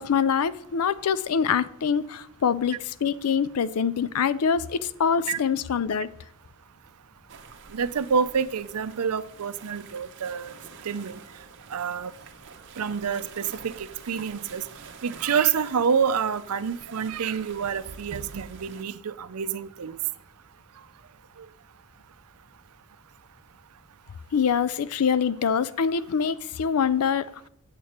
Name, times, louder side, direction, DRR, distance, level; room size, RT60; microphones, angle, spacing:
voice 1, 0.0-6.1 24.3-27.5, left 7 dB, 80° left, 0.4 m, -25 dB
sound 1, 7.3-18.8, right 5 dB, 55° right, 0.9 m, -47 dB
voice 2, 7.7-10.5 10.8-11.2 11.7-12.1 12.8-14.6 15.0-20.0, right 6 dB, 80° right, 0.5 m, -27 dB
8.4 x 7.5 x 4.3 m
head